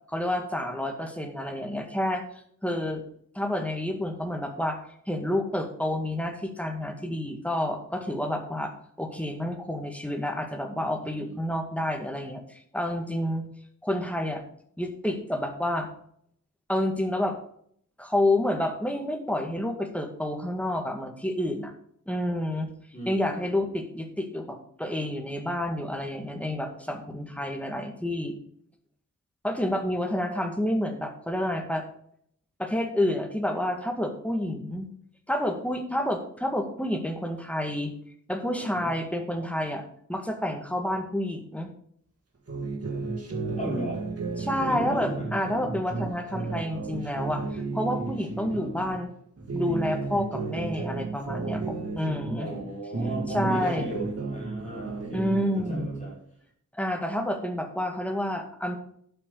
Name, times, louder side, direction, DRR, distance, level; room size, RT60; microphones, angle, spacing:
voice 1, 0.1-2.2 2.6-3.0 3.3-4.8 5.1-8.7 9.0-13.4 13.8-14.4 14.8-15.9 16.7-17.4 18.0-21.7 22.1-22.7 23.1-28.4 29.4-31.8 32.6-34.9 35.3-37.9 38.3-39.8 40.1-41.7 44.4-49.1 49.5-52.5 53.3-53.9 55.1-55.9 56.7-58.8, left 1 dB, 5° left, 3 dB, 1.9 m, -29 dB
voice 2, 11.0-11.3 22.9-23.6 38.6-38.9 43.5-44.0 44.6-45.2 52.4-56.2, right 1 dB, 25° left, -5 dB, 4.9 m, -36 dB
sound 1, 42.5-49.0 49.4-52.7 52.9-56.1, right 3 dB, 50° right, 2.3 m, -33 dB
11.5 x 7.9 x 4.0 m, 0.65 s
wide cardioid pair, 105°, 31 cm